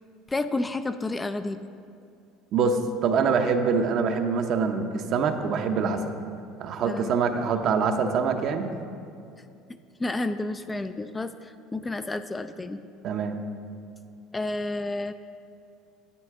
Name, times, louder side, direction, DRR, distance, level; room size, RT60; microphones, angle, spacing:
voice 1, 0.3-1.6 6.9-7.1 10.0-12.8 14.3-15.1, left 2 dB, 15° left, 10 dB, 0.3 m, -30 dB
voice 2, 2.5-6.1 6.6-8.7 13.0-13.4, right 5 dB, 55° right, 6 dB, 0.7 m, -25 dB
9.7 x 8.3 x 3.6 m, 2.5 s
supercardioid pair, 105°, 0 cm